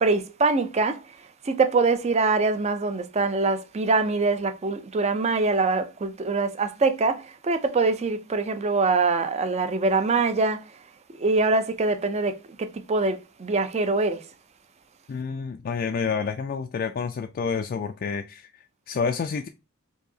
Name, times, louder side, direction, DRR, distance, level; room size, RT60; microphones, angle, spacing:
voice 1, 0.0-1.0 1.4-10.6 11.2-14.2, right 3 dB, 30° right, 0.4 m, -24 dB
voice 2, 15.1-19.5, left 5 dB, 45° left, 0.3 m, -29 dB
4.7 x 2.8 x 2.7 m
head